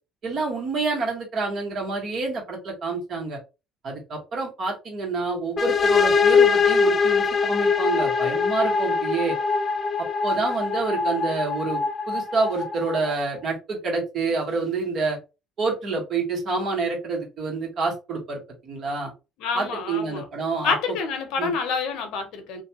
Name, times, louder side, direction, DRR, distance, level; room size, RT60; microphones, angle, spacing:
voice 1, 0.2-3.4 3.8-9.4 10.0-15.2 15.6-19.1 19.5-20.7 21.4-21.5, right 3 dB, 55° right, 1.4 m, -28 dB
sound 1, 5.6-13.2, left 5 dB, 35° left, 0.3 m, -22 dB
voice 2, 19.4-20.2 20.6-22.6, left 5 dB, 80° left, 0.8 m, -27 dB
2.6 x 2.3 x 2.8 m
cardioid pair, 100°, 0 cm